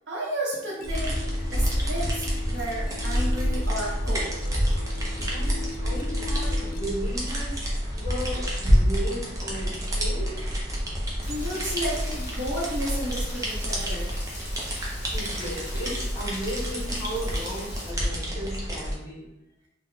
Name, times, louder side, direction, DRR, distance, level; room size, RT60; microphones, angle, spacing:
voice 1, 0.1-1.2 1.5-4.3 11.3-14.1, right 1 dB, 80° right, -6 dB, 1.0 m, -32 dB
sound 1, 0.5-6.9, left 5 dB, 50° left, 0.3 m, -41 dB
sound 2, 0.8-18.9, equal, 20° right, 0.5 m, -28 dB
voice 2, 5.3-10.6 15.0-19.3, equal, 15° left, -9 dB, 1.0 m, -35 dB
Rain, 11.2-17.9, left 1 dB, 70° left, 1.1 m, -42 dB
3.4 x 2.1 x 2.5 m, 0.89 s
head